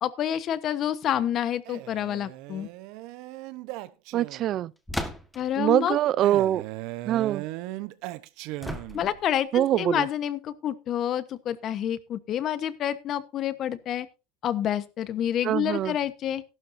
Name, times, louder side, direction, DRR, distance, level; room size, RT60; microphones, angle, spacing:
voice 1, 0.0-2.7 5.3-6.0 8.9-14.1 14.4-16.4, left 10 dB, 45° left, 1.2 m, -28 dB
Male speech man speaking, 1.6-4.7 6.2-9.2, right 17 dB, 65° right, 1.0 m, -38 dB
voice 2, 4.1-4.7 5.6-6.6 7.1-7.4 9.5-10.0 15.4-15.9, right 12 dB, 45° right, 0.5 m, -24 dB
sound 1, 4.9-5.6 8.6-9.3, left 1 dB, 5° left, 1.6 m, -35 dB
14.5 x 12.0 x 2.7 m
supercardioid pair, 125°, 0 cm